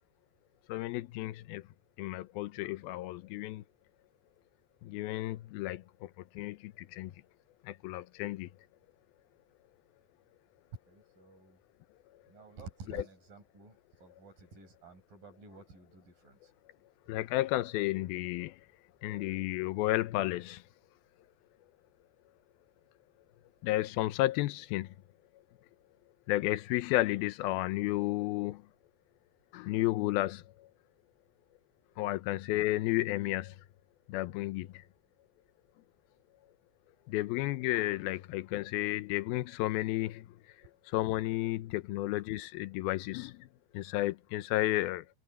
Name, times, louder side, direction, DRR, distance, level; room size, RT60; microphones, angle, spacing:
voice 1, 0.7-1.7 2.0-3.6 4.8-7.1 7.6-8.5 12.9-13.0 17.1-18.6 19.0-20.6 23.6-24.9 26.3-28.6 29.5-30.7 32.0-33.6 34.1-34.8 37.1-40.3 40.9-43.5 43.7-45.1, left 17 dB, 75° left, 2.3 m, -32 dB
voice 2, 10.9-11.6 12.3-16.5 31.9-32.2 41.9-42.1, right 4 dB, 55° right, 6.7 m, -52 dB
omnidirectional pair, 4.8 m